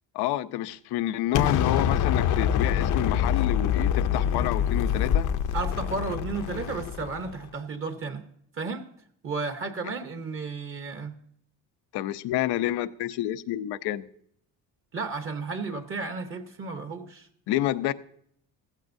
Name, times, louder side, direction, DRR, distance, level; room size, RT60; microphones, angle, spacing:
voice 1, 0.1-5.3 11.9-14.1 17.5-17.9, left 14 dB, 85° left, 0.8 m, -29 dB
Explosion, 1.3-7.3, left 9 dB, 55° left, 0.7 m, -25 dB
voice 2, 5.5-8.2 8.5-8.9 9.2-11.2 14.9-17.3, right 4 dB, 35° right, 1.0 m, -33 dB
15.5 x 15.0 x 2.7 m
cardioid pair, 150°, 38 cm